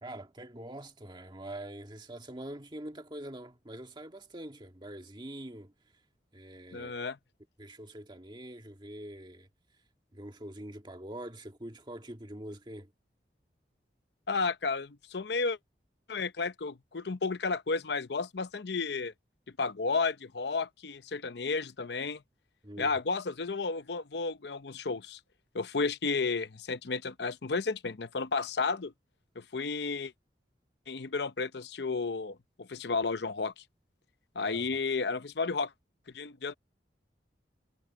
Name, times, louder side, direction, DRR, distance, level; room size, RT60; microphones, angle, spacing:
voice 1, 0.0-5.7 6.3-6.9 7.6-9.5 10.1-12.9 22.6-23.0 34.4-34.7, right 1 dB, 25° right, 1.8 m, -44 dB
voice 2, 6.7-7.2 14.3-15.6 16.1-19.1 19.6-22.2 22.8-25.2 25.5-28.9 29.4-30.1 30.9-33.6 34.3-35.7 36.1-36.5, left 4 dB, 75° left, 0.7 m, -32 dB
head